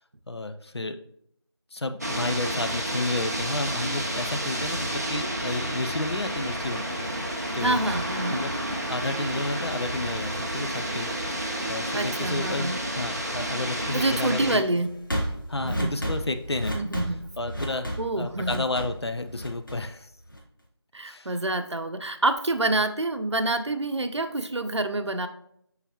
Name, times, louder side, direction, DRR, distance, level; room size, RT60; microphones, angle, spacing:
voice 1, 0.3-1.0 1.7-6.8 7.5-7.8 8.3-8.5 8.9-14.7 15.5-16.7 17.4-20.1 21.0-21.3, left 2 dB, 70° left, 8 dB, 0.6 m, -31 dB
sound 1, 2.0-14.6, right 1 dB, 35° right, 0.8 m, -31 dB
sound 2, 2.7-20.6, equal, 50° left, 1.4 m, -38 dB
voice 2, 7.6-8.4 11.9-12.8 13.9-14.9 15.6-15.9 16.7-17.3 18.0-18.6 20.9-25.3, right 2 dB, 85° right, 7 dB, 0.7 m, -27 dB
5.8 x 5.7 x 2.9 m, 0.71 s
figure-of-eight pair, 180°, 14 cm